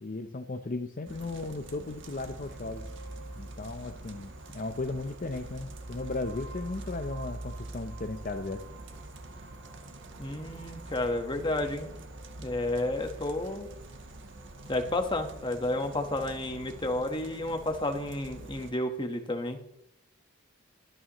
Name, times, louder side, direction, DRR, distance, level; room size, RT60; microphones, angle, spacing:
voice 1, 0.0-2.8 3.4-8.6, left 2 dB, 40° left, 7 dB, 0.6 m, -36 dB
sound 1, 1.1-18.7, right 2 dB, 55° right, 1.3 m, -44 dB
voice 2, 10.2-11.9 12.4-13.7 14.7-19.6, left 1 dB, 20° left, 5 dB, 1.2 m, -31 dB
22.5 x 8.9 x 3.0 m, 0.78 s
head